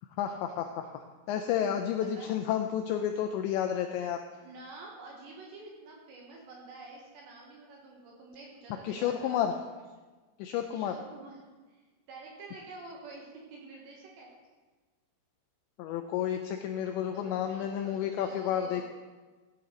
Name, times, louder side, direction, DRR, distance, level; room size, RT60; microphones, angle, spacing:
voice 1, 0.2-4.2 8.8-9.5 10.4-10.9 15.8-18.8, left 9 dB, 85° left, 5 dB, 2.6 m, -31 dB
voice 2, 2.0-2.3 4.4-10.1 10.7-11.4 11.7-14.3 17.1-18.8, right 3 dB, 70° right, -2 dB, 3.4 m, -48 dB
16.5 x 9.7 x 3.9 m, 1.3 s
omnidirectional pair, 5.7 m